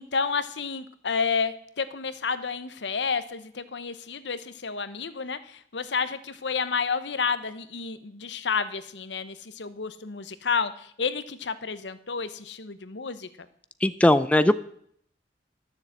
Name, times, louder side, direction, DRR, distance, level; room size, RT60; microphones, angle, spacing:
voice 1, 0.0-13.3, left 5 dB, 70° left, 13 dB, 0.9 m, -30 dB
voice 2, 13.8-14.5, left 1 dB, 5° left, 12 dB, 0.4 m, -19 dB
12.5 x 7.2 x 7.9 m, 0.64 s
head